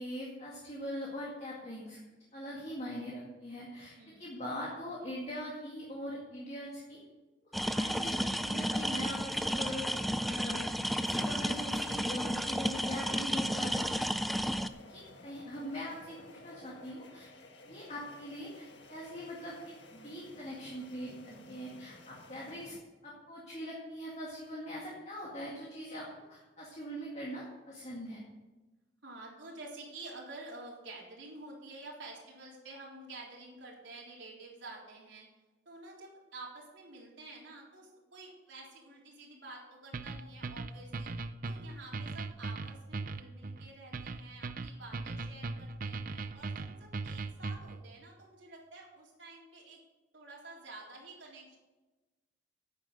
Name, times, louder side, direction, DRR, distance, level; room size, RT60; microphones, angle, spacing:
voice 1, 0.0-2.0 2.3-3.9 4.2-7.0 7.5-14.1 14.8-17.3 17.6-22.8 23.0-28.2, equal, 35° left, -4 dB, 2.1 m, -42 dB
voice 2, 4.0-4.4 21.3-21.7 29.0-35.3 35.7-41.1 41.4-49.8 50.1-51.6, right 2 dB, 80° right, -3 dB, 3.7 m, -50 dB
sound 1, 7.5-14.7, equal, ahead, 0.3 m, -32 dB
sound 2, 7.9-22.8, left 2 dB, 70° left, 1.6 m, -55 dB
sound 3, 39.9-47.8, right 3 dB, 45° right, 0.6 m, -39 dB
10.0 x 8.9 x 6.6 m, 1.2 s
head